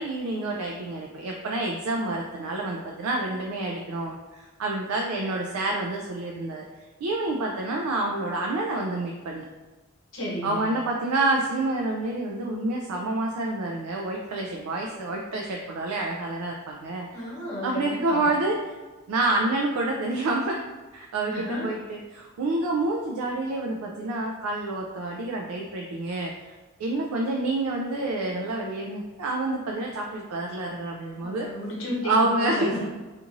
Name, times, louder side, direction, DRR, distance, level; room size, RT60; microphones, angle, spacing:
voice 1, 0.0-6.6 7.0-9.4 10.4-18.7 19.1-20.6 20.9-26.5 26.8-31.5 32.0-32.8, right 2 dB, 90° right, 0 dB, 0.3 m, -28 dB
voice 2, 10.1-10.6 17.1-18.3 21.3-21.7 31.2-32.9, equal, 65° left, -4 dB, 0.8 m, -33 dB
2.9 x 2.5 x 2.5 m, 1.2 s
head